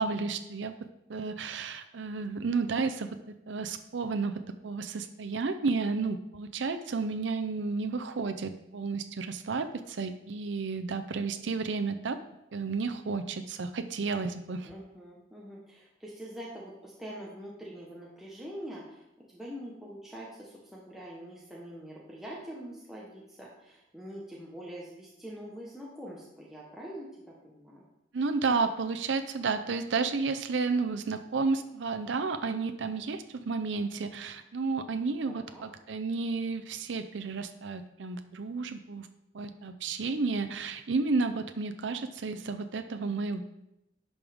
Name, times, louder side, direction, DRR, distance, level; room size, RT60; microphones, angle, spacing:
voice 1, 0.0-3.2 3.5-12.2 12.5-14.7 28.1-39.1 39.3-43.4, right 4 dB, 85° right, 8 dB, 0.6 m, -32 dB
voice 2, 14.6-19.0 19.3-27.8 35.2-35.6, equal, ahead, -5 dB, 1.2 m, -44 dB
10.5 x 5.4 x 3.5 m, 0.87 s
head